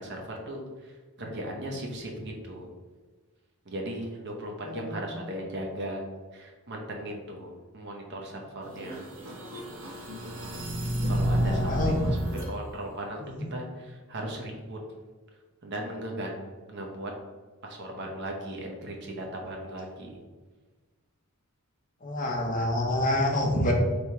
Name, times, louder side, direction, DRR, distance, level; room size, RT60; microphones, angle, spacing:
voice 1, 0.0-2.7 3.6-9.0 11.0-12.2 12.5-13.2 13.5-14.8 15.6-16.3 16.7-17.1 17.6-20.2, right 1 dB, 50° right, 1 dB, 0.8 m, -37 dB
sound 1, 8.7-12.5, equal, 80° right, 1.0 m, -29 dB
voice 2, 11.4-12.1 13.3-13.5 22.0-23.7, left 1 dB, 35° left, 1 dB, 0.7 m, -27 dB
3.4 x 2.8 x 4.5 m, 1.4 s
head